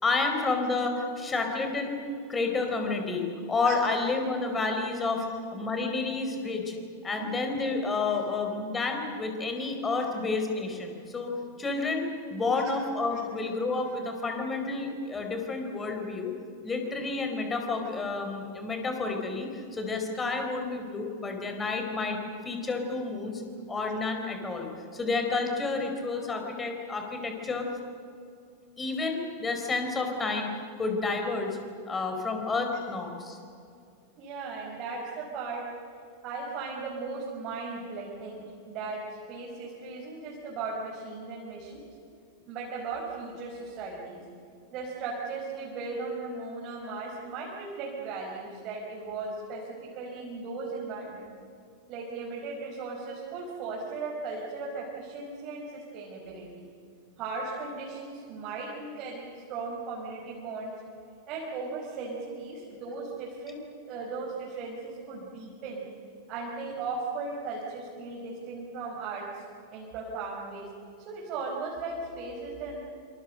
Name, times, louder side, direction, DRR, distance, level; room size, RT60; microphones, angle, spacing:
voice 1, 0.0-5.3 5.5-6.7 7.0-16.3 16.6-23.4 23.7-27.7 28.8-31.6 31.9-33.4, left 3 dB, 15° left, 4 dB, 4.7 m, -30 dB
voice 2, 7.2-7.5 8.1-8.2 10.0-10.1 12.5-12.7 13.1-13.2 13.8-13.9 34.2-35.7 36.2-41.8 42.5-44.2 44.7-51.3 51.9-56.7 57.2-60.7 61.3-65.8 66.3-69.4 69.7-70.7 71.1-72.8, right 4 dB, 35° right, -3 dB, 5.4 m, -37 dB
28.0 x 27.0 x 6.7 m, 2.4 s
figure-of-eight pair, 90°, 0 cm